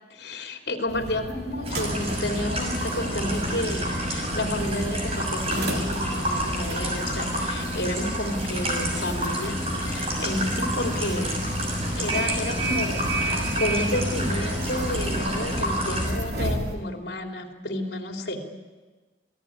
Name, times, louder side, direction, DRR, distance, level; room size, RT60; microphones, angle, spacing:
voice 1, 0.1-11.3 12.0-18.4, left 1 dB, 70° left, 3 dB, 3.4 m, -31 dB
sound 1, 0.9-16.8, right 1 dB, 60° right, 3.6 m, -32 dB
sound 2, 1.6-16.1, equal, 35° right, 6.4 m, -30 dB
Bicycle, 8.6-16.1, equal, 10° right, 6.9 m, -37 dB
28.0 x 18.0 x 9.6 m, 1.3 s
head